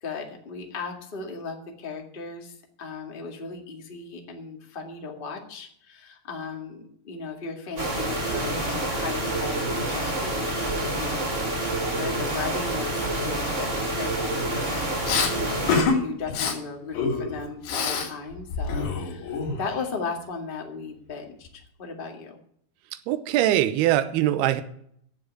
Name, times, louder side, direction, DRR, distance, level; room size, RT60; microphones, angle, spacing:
voice 1, 0.0-22.4, left 4 dB, 30° left, 2 dB, 1.0 m, -36 dB
sound 1, 7.8-15.8, right 1 dB, 25° right, 2.0 m, -28 dB
Respiratory sounds, 15.1-15.3 15.7-16.0 16.3-16.5 16.9-18.1 18.4-19.8, left 5 dB, 90° left, 4.9 m, -26 dB
voice 2, 23.1-24.6, right 13 dB, 85° right, 10 dB, 2.8 m, -22 dB
10.5 x 7.6 x 9.4 m, 0.65 s
omnidirectional pair, 4.6 m